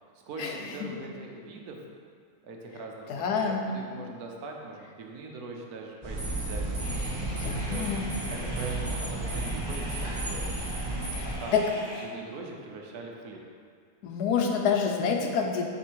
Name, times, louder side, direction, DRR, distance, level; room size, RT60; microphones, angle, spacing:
voice 1, 0.3-1.8 2.4-7.8 8.3-10.6 11.2-11.5 12.0-13.4, right 3 dB, 75° right, 1 dB, 1.3 m, -42 dB
voice 2, 3.1-3.6 7.4-8.1 11.1-11.6 14.0-15.6, left 6 dB, 90° left, 2 dB, 1.3 m, -27 dB
sound 1, 6.0-11.3, right 2 dB, 20° right, 1.0 m, -32 dB
sound 2, 6.8-12.0, equal, 20° left, 0.8 m, -43 dB
7.4 x 3.5 x 4.6 m, 2.1 s
omnidirectional pair, 1.6 m